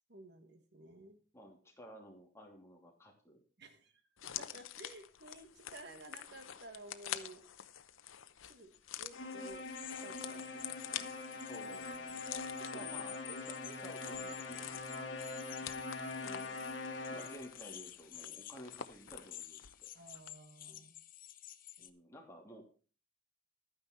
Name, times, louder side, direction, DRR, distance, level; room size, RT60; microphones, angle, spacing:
voice 1, 0.1-1.2 3.6-4.0 4.5-7.4 8.4-11.0 11.3-11.4 12.6-12.8 15.6-15.8 16.2-16.8 19.9-21.0, right 2 dB, 55° right, 7 dB, 1.8 m, -54 dB
voice 2, 1.3-3.4 11.3-15.2 17.1-19.9 21.8-22.6, equal, 15° left, 1 dB, 2.8 m, -54 dB
sound 1, 4.2-19.9 20.1-20.3, left 10 dB, 80° left, 0.8 m, -48 dB
sound 2, 9.1-17.7, left 3 dB, 60° left, 2.6 m, -43 dB
sound 3, 9.6-21.9, left 12 dB, 45° left, 0.8 m, -52 dB
12.5 x 9.5 x 4.5 m, 0.37 s
head